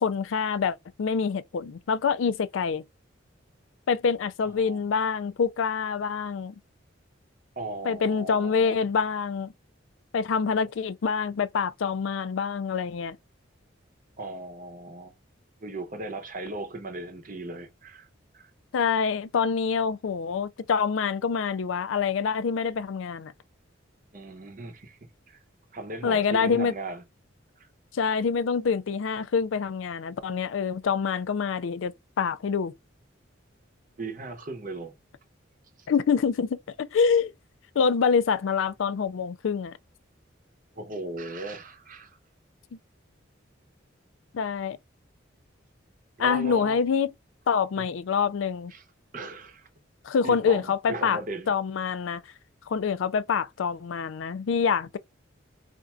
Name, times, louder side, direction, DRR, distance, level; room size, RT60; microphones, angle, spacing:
voice 1, 0.0-2.8 3.9-6.5 7.9-9.5 10.1-13.2 18.7-23.3 26.0-26.7 27.9-32.7 35.9-37.3 37.8-39.8 44.3-44.8 46.2-47.1 47.5-48.7 50.0-51.2 51.5-52.2 52.7-55.0, left 6 dB, 80° left, 0.4 m, -26 dB
voice 2, 4.5-4.9 7.6-8.8 14.2-15.1 15.6-18.1 18.3-18.5 24.1-25.4 25.7-27.0 27.6-27.7 34.0-34.9 35.8-35.9 40.7-42.2 46.2-46.8 47.8-47.9 48.7-48.9 49.1-49.7 50.2-51.5, right 2 dB, 45° right, 0.8 m, -37 dB
4.3 x 2.5 x 2.3 m
head